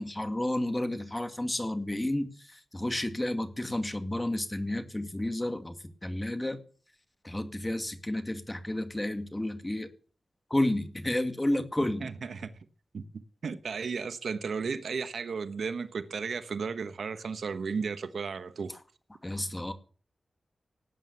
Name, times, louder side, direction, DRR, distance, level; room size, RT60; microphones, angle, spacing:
voice 1, 0.0-5.8 6.0-6.6 7.2-9.9 10.5-12.1 19.2-19.7, left 1 dB, 15° left, 2.1 m, -31 dB
voice 2, 12.0-12.5 12.9-18.7, right 5 dB, 80° right, 1.2 m, -34 dB
18.5 x 9.6 x 7.1 m
wide cardioid pair, 140°, 0 cm